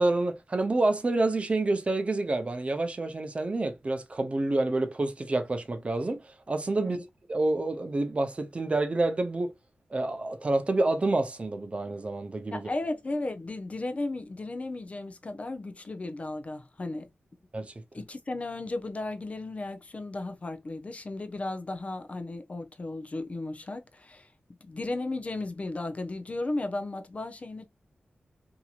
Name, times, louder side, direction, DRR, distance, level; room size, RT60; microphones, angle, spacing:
voice 1, 0.0-6.2 6.5-7.0 7.3-9.5 9.9-12.7 17.5-17.7, right 2 dB, 35° right, 0.6 m, -28 dB
voice 2, 12.5-17.1 17.9-24.3 24.6-27.7, left 2 dB, 35° left, 0.5 m, -35 dB
2.8 x 2.7 x 2.4 m
wide cardioid pair, 85°, 4 cm